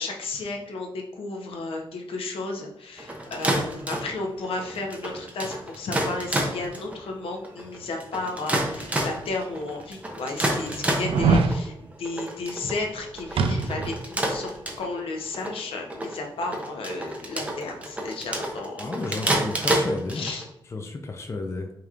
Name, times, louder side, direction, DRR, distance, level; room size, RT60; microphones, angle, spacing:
voice 1, 0.0-18.9 20.1-20.4, left 3 dB, 85° left, 2 dB, 0.8 m, -33 dB
sound 1, 3.0-20.4, right 1 dB, 15° right, 0.6 m, -30 dB
sound 2, 9.8-9.9 11.0-11.6 13.4-14.0 14.3-14.4, right 4 dB, 90° right, 0.4 m, -22 dB
voice 2, 18.8-20.3 20.7-21.7, left 3 dB, 30° left, 4 dB, 0.4 m, -32 dB
4.9 x 2.9 x 2.4 m, 0.81 s
wide cardioid pair, 130°, 9 cm